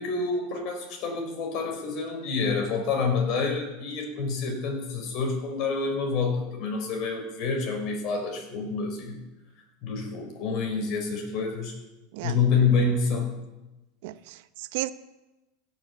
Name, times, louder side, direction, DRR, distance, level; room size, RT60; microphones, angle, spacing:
voice 1, 0.0-9.2 9.8-11.7 12.2-13.3, left 4 dB, 45° left, 2 dB, 4.5 m, -27 dB
voice 2, 14.0-14.9, right 16 dB, 65° right, 13 dB, 0.8 m, -34 dB
16.5 x 7.3 x 7.1 m, 1.0 s
supercardioid pair, 145°, 0 cm